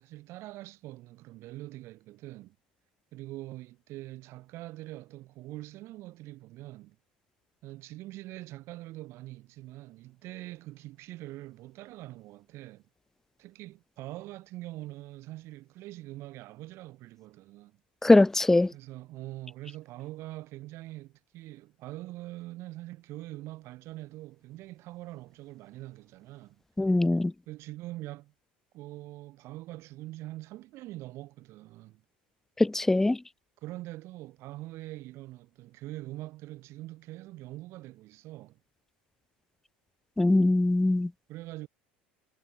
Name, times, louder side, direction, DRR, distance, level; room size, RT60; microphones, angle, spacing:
voice 1, 0.0-2.6 3.1-7.0 7.6-12.8 13.4-17.8 18.7-26.6 27.5-28.3 28.7-32.0 33.6-38.6 41.3-41.7, right 17 dB, 55° right, 4.2 m, -43 dB
voice 2, 18.0-18.7 26.8-27.3 32.6-33.2 40.2-41.1, left 2 dB, 5° left, 0.4 m, -22 dB
hypercardioid pair, 75°, 5 cm